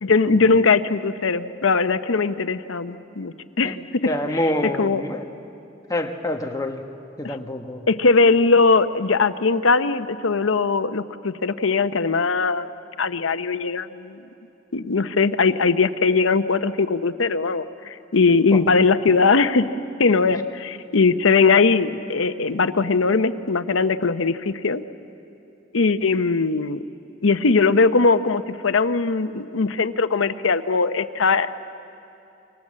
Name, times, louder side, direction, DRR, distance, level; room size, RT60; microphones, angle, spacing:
voice 1, 0.0-4.1 4.8-5.0 7.2-7.4 7.9-12.7 13.0-14.2 14.7-19.7 20.0-24.8 25.7-26.8 27.2-31.5, left 4 dB, 90° left, 11 dB, 0.8 m, -20 dB
voice 2, 4.1-5.3 5.9-6.8 7.2-7.8 18.5-18.6, left 1 dB, 20° left, 4 dB, 1.3 m, -26 dB
28.0 x 24.5 x 7.6 m, 2.7 s
head